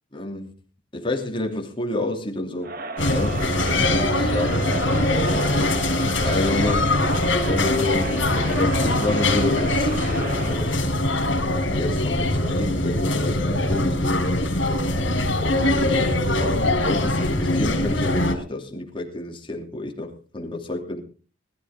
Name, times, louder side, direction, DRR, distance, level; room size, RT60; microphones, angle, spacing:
voice 1, 0.1-0.5 0.9-2.8 3.1-4.6 6.2-7.0 7.4-9.9 10.4-10.9 11.7-14.5 15.4-21.0, left 2 dB, 25° left, 2.9 m, -29 dB
Crowd, 2.6-10.7, right 3 dB, 50° right, 1.6 m, -33 dB
sound 1, 3.0-18.3, left 1 dB, 70° left, 4.1 m, -22 dB
20.5 x 13.0 x 3.7 m
head